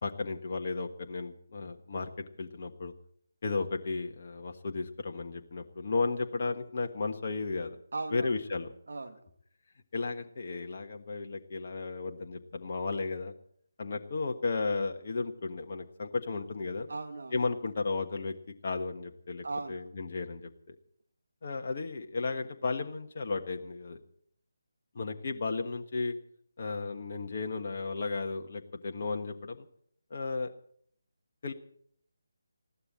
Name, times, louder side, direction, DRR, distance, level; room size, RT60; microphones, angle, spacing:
voice 1, 0.0-2.1 2.4-2.9 3.4-7.8 8.1-8.7 9.9-13.3 13.8-16.9 17.3-18.3 18.6-20.8 21.4-24.0 24.9-26.1 26.6-29.7 30.1-30.5 31.4-31.5, left 3 dB, 45° left, 3 dB, 1.4 m, -34 dB
voice 2, 7.9-8.4 8.9-9.2 16.9-17.4 19.4-19.9, right 3 dB, 60° right, 4 dB, 2.4 m, -38 dB
20.0 x 15.0 x 4.2 m, 0.65 s
figure-of-eight pair, 150°, 0 cm